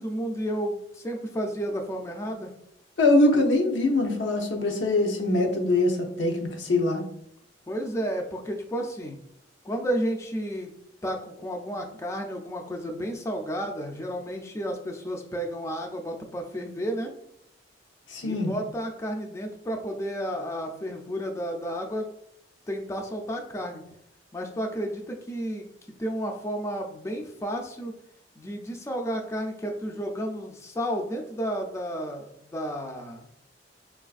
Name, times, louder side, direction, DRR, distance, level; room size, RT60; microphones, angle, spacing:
voice 1, 0.0-2.5 7.7-9.2 9.6-10.7 11.0-17.1 18.2-22.1 22.7-23.8 24.3-25.7 26.0-27.9 28.4-33.3, equal, 15° left, 2 dB, 0.3 m, -32 dB
voice 2, 3.0-7.0 18.1-18.5, left 2 dB, 85° left, 3 dB, 0.6 m, -23 dB
3.9 x 2.4 x 2.4 m, 0.75 s
head